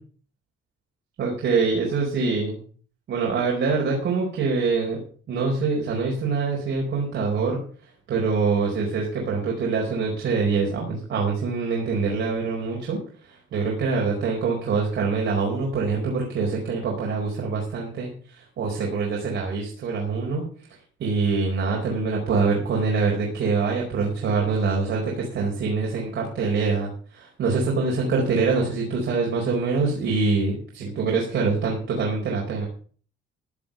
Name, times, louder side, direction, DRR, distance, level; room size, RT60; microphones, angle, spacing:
voice 1, 1.2-2.6 3.1-5.0 5.3-7.6 8.1-20.4 21.0-32.7, right 4 dB, 70° right, -1 dB, 4.7 m, -24 dB
15.5 x 6.7 x 7.1 m, 0.43 s
cardioid pair, 90°, 20 cm